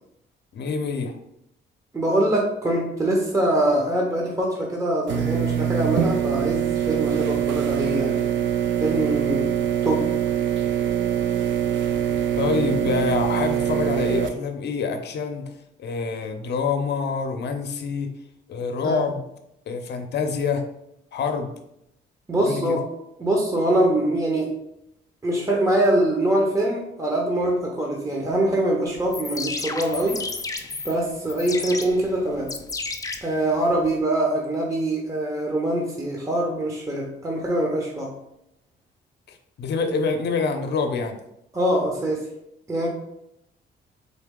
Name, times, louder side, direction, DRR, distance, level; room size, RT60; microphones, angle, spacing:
voice 1, 0.5-1.1 12.4-15.4 15.8-18.1 18.5-19.2 19.7-20.6 21.1-21.5 22.4-22.8 39.3-41.2, left 5 dB, 60° left, 6 dB, 0.7 m, -26 dB
voice 2, 1.9-8.2 8.8-9.5 9.8-10.1 18.8-19.0 22.3-22.8 23.2-24.5 25.2-30.2 30.8-32.5 33.2-38.1 41.5-42.2 42.7-42.9, right 1 dB, 15° right, -1 dB, 0.8 m, -23 dB
sound 1, 5.1-14.3, right 9 dB, 70° right, 0.4 m, -24 dB
sound 2, 29.0-34.0, left 3 dB, 15° left, 0.4 m, -33 dB
4.1 x 2.8 x 3.6 m, 0.80 s
cardioid pair, 90°, 20 cm